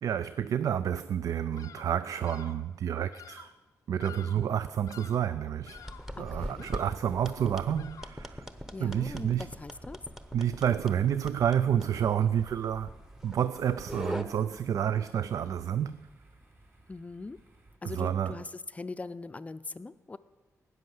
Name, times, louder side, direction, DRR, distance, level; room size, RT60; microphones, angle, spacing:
voice 1, 0.0-3.5 3.9-5.8 6.2-8.5 8.8-9.5 10.3-12.9 13.2-16.1 17.8-18.4, right 9 dB, 80° right, 0.4 m, -29 dB
Bird vocalization bird call bird song, 1.6-2.0 2.2-2.7 3.1-3.6 4.0-4.5 4.8-5.3 5.7-6.2 6.6-7.1 7.7-8.3, left 8 dB, 80° left, 0.5 m, -50 dB
sound 1, 4.8-17.8, right 2 dB, 40° right, 2.2 m, -58 dB
sound 2, 5.8-14.2, equal, 5° right, 0.9 m, -42 dB
voice 2, 6.2-6.7 8.7-10.0 16.9-17.4 17.8-18.5 18.7-20.2, left 3 dB, 25° left, 0.4 m, -41 dB
13.0 x 9.3 x 7.8 m
wide cardioid pair, 110°, 6 cm